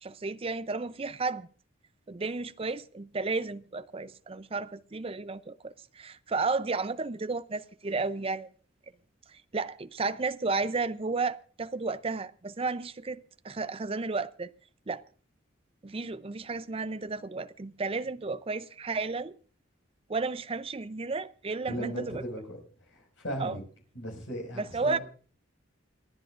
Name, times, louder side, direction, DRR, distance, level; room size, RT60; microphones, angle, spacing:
voice 1, 0.0-1.5 2.1-8.5 9.3-14.5 14.9-15.0 15.8-19.4 20.1-22.2 23.4-23.6 24.6-25.0, right 3 dB, 30° right, 0.5 m, -33 dB
voice 2, 21.7-22.6 22.9-23.6 23.9-25.0, equal, 80° left, 5.6 m, -37 dB
28.5 x 10.0 x 2.5 m
head